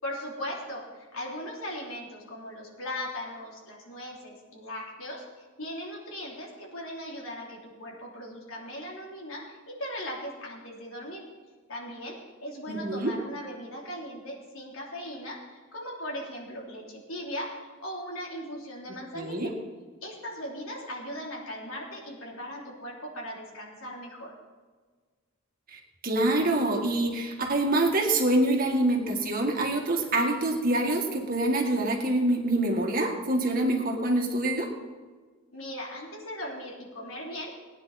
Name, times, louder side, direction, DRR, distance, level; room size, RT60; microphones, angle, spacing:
voice 1, 0.0-11.2 11.7-19.5 20.0-24.3 35.5-37.5, equal, 85° left, -3 dB, 3.5 m, -38 dB
voice 2, 12.7-13.1 19.1-19.5 25.7-34.7, right 1 dB, 40° right, 1 dB, 1.9 m, -26 dB
18.5 x 9.8 x 4.2 m, 1.4 s
head